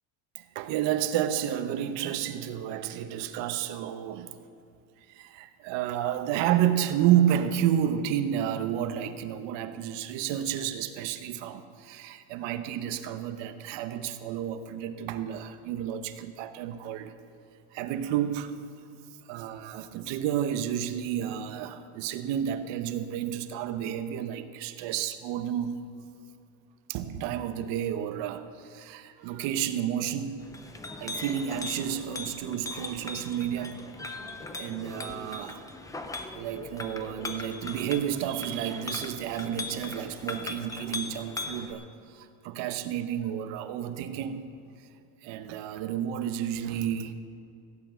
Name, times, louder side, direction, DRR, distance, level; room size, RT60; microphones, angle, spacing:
voice 1, 0.4-4.3 5.1-17.1 17.7-18.6 19.3-25.8 26.9-30.5 31.0-33.8 34.5-35.7 36.3-44.5 45.2-47.1, right 10 dB, 60° right, 10 dB, 1.0 m, -31 dB
Chink clink, 30.4-41.7, left 3 dB, 5° left, 0.4 m, -39 dB
16.0 x 8.4 x 6.8 m, 2.5 s
cardioid pair, 155°, 49 cm